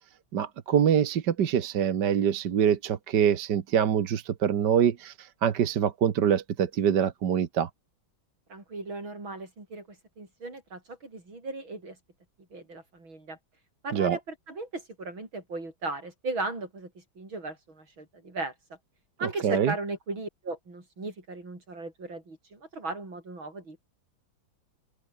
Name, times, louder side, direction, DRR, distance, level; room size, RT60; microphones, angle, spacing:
voice 1, 0.3-7.7 13.9-14.2 19.4-19.7, right 8 dB, 60° right, 1.8 m, -25 dB
voice 2, 8.5-12.0 12.5-13.4 13.8-18.5 19.2-23.8, right 2 dB, 80° right, 7.4 m, -37 dB
omnidirectional pair, 2.2 m